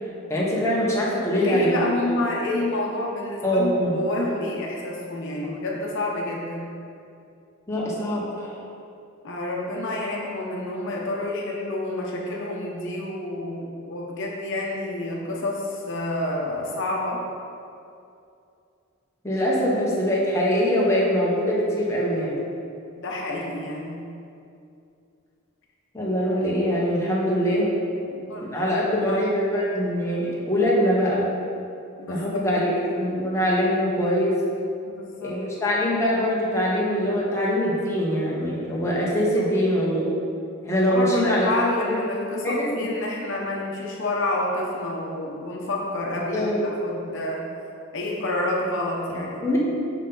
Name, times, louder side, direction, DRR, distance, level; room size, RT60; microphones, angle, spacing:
voice 1, 0.3-1.8 3.4-4.0 5.4-5.5 7.7-8.6 19.2-22.4 25.9-27.7 28.4-31.3 32.1-32.7 33.0-34.4 35.2-40.1 40.6-41.5 42.4-42.7 46.1-46.7 49.1-49.6, equal, 15° left, -6 dB, 1.1 m, -23 dB
voice 2, 1.3-6.7 9.2-17.2 23.0-24.0 27.9-29.2 32.0-32.4 32.9-33.0 34.9-35.4 39.4-39.5 40.7-46.5 46.8-47.4 47.9-49.4, left 2 dB, 60° left, -2 dB, 0.9 m, -29 dB
5.9 x 5.6 x 3.9 m, 2.5 s
head